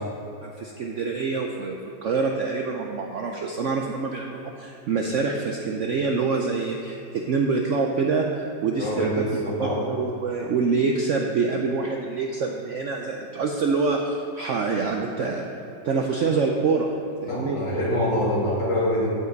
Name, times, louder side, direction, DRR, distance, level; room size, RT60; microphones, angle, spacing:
voice 1, 0.4-9.2 9.6-15.4 15.8-16.9 17.2-17.6, right 4 dB, 70° right, 2 dB, 0.7 m, -26 dB
voice 2, 8.8-9.8 17.2-19.1, equal, 75° left, -6 dB, 2.8 m, -25 dB
14.0 x 5.4 x 3.9 m, 2.9 s
omnidirectional pair, 1.9 m